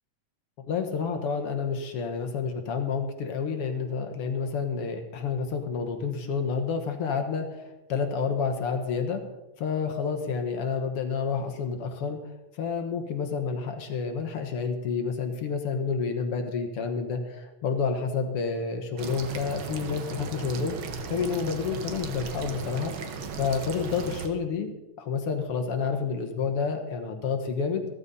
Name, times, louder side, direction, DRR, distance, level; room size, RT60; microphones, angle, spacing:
voice 1, 0.7-9.2 9.6-20.8 21.1-24.7 25.0-27.9, left 5 dB, 60° left, 6 dB, 1.8 m, -29 dB
sound 1, 19.0-24.3, right 6 dB, 60° right, 1.4 m, -36 dB
14.5 x 14.0 x 4.1 m, 0.99 s
omnidirectional pair, 3.5 m